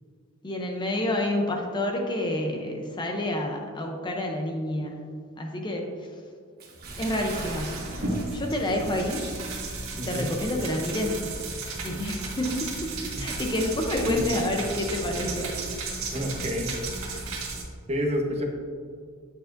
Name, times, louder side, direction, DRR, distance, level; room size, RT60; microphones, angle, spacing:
voice 1, 0.4-5.1 5.4-6.1 7.0-7.9 8.3-9.2 10.0-11.2 11.8-15.5 17.1-17.2, left 1 dB, 20° left, 1 dB, 0.7 m, -29 dB
Bathtub (filling or washing) / Splash splatter, 6.6-9.5 9.8-10.0 10.5-10.6, right 3 dB, 50° right, 1.3 m, -43 dB
sound 1, 6.8-17.6, right 3 dB, 70° right, 1.8 m, -34 dB
voice 2, 10.0-10.3 13.1-13.2 14.0-14.2 16.1-16.7 17.9-18.4, equal, 30° right, 1 dB, 1.0 m, -29 dB
9.2 x 6.9 x 2.6 m, 2.1 s
head